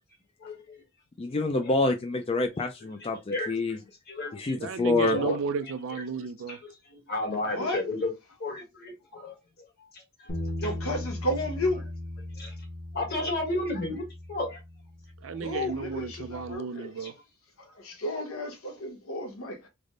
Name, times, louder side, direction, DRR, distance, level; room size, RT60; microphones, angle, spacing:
voice 1, 1.2-3.8 4.3-5.2, left 3 dB, 25° left, 0.4 m, -27 dB
voice 2, 3.0-3.6 4.1-4.5 5.1-5.4 6.5-8.1 8.4-9.7 9.9-10.0 10.6-10.7 12.4-12.5 12.9-14.6 16.8-17.1, left 2 dB, 50° left, 1.5 m, -33 dB
voice 3, 4.6-6.6 15.2-17.1, right 5 dB, 65° right, 0.4 m, -32 dB
voice 4, 7.5-7.8 10.6-11.9 15.3-16.9 17.6-19.7, left 1 dB, 90° left, 1.1 m, -32 dB
sound 1, 10.3-16.5, left 1 dB, 65° left, 1.1 m, -38 dB
3.4 x 2.1 x 3.7 m
head